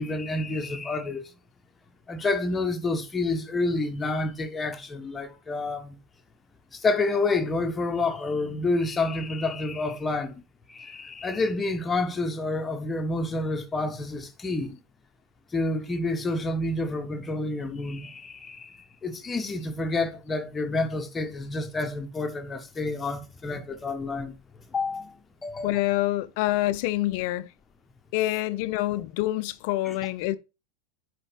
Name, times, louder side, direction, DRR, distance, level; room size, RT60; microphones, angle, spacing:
voice 1, 0.0-1.3 2.1-6.0 6.7-10.3 10.7-14.8 15.5-24.3 24.7-25.1 25.4-25.9 29.8-29.9, left 2 dB, 15° left, 1.1 m, -29 dB
voice 2, 25.6-27.5 28.1-30.4, left 16 dB, 45° left, 0.6 m, -26 dB
9.9 x 5.0 x 3.3 m
figure-of-eight pair, 90°, 0 cm